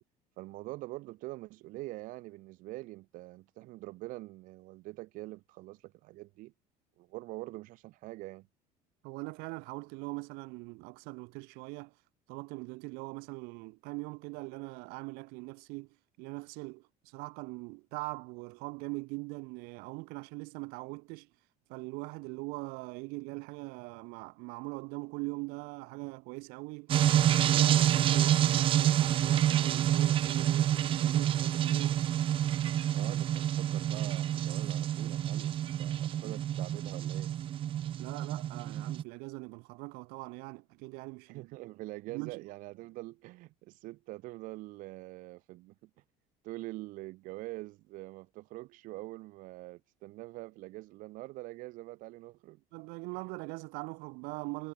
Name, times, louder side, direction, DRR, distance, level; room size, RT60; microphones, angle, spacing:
voice 1, 0.4-6.5 7.0-8.5 32.9-37.3 41.3-45.9 46.4-52.6, right 19 dB, 60° right, 3.6 m, -44 dB
voice 2, 9.0-11.9 12.3-15.9 16.2-21.3 21.7-26.9 27.3-32.1 38.0-41.5 42.1-42.4 52.7-54.7, right 29 dB, 85° right, 5.9 m, -41 dB
sound 1, 26.9-39.0, right 11 dB, 35° right, 1.0 m, -28 dB
cardioid pair, 170°, 15 cm